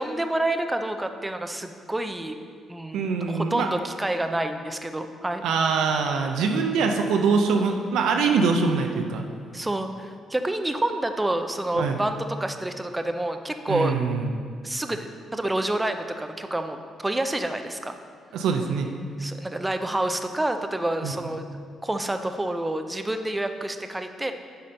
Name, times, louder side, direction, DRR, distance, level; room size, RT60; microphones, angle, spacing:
voice 1, 0.0-2.4 2.7-5.5 9.5-13.9 14.6-17.9 19.2-21.5 21.8-24.3, right 1 dB, 10° right, 7 dB, 0.5 m, -28 dB
voice 2, 2.9-3.7 5.4-9.2 11.8-12.0 13.7-14.3 18.3-18.9 21.0-21.1, right 5 dB, 85° right, 3 dB, 0.5 m, -23 dB
7.6 x 4.2 x 5.2 m, 2.1 s
cardioid pair, 90°, 0 cm